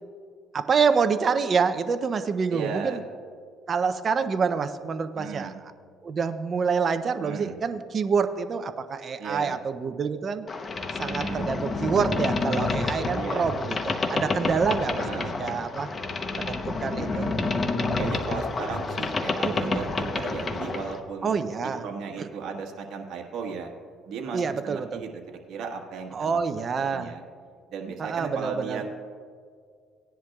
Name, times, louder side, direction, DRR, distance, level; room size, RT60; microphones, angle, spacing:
voice 1, 0.5-3.0 3.7-5.5 6.0-10.4 11.0-15.9 16.4-17.3 19.4-19.8 21.2-21.8 24.3-25.0 26.1-27.1 28.0-28.9, right 5 dB, 40° right, 9 dB, 0.5 m, -27 dB
voice 2, 2.5-3.0 5.2-5.6 7.2-7.5 9.2-9.6 11.1-11.5 13.1-13.5 15.0-15.4 17.0-17.4 18.0-21.4 21.6-23.7 24.0-26.4 26.9-27.2 27.7-28.9, right 5 dB, 65° right, 2 dB, 1.4 m, -35 dB
Boat Water vehicle, 10.5-21.0, left 3 dB, 30° left, 0.8 m, -29 dB
17.5 x 10.5 x 2.3 m, 2.1 s
cardioid pair, 110°, 0 cm